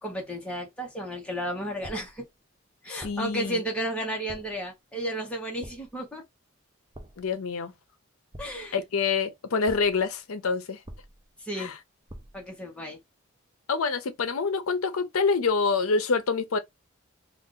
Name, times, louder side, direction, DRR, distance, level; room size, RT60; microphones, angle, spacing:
voice 1, 0.0-2.2 2.8-6.2 8.4-8.8 11.4-11.7 12.3-13.0, right 1 dB, 5° left, 1.0 m, -33 dB
sound 1, 1.8-2.3 3.0-3.4 4.3-4.7 5.6-6.1 6.9-7.4 8.3-8.9 9.7-10.1 10.9-11.4 12.1-12.5, right 1 dB, 20° right, 0.6 m, -46 dB
voice 2, 2.9-3.6 7.2-7.7 8.7-10.8 11.6-11.7 13.7-16.6, left 4 dB, 80° left, 0.6 m, -26 dB
2.5 x 2.4 x 3.6 m
head